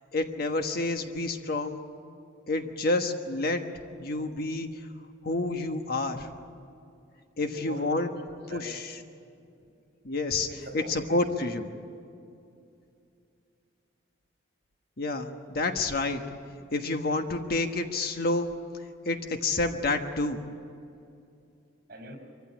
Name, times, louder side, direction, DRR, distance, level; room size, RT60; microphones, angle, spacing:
voice 1, 0.1-1.8 2.5-3.6 4.0-4.7 5.2-6.3 7.4-8.1 8.5-8.8 10.0-10.5 10.9-11.7 15.0-16.2 16.7-18.5 19.0-20.4, left 2 dB, 55° left, 6 dB, 1.4 m, -29 dB
voice 2, 7.4-8.7 10.5-11.2 21.9-22.2, right 1 dB, 50° right, 4 dB, 5.5 m, -43 dB
24.5 x 15.5 x 9.9 m, 2.6 s
head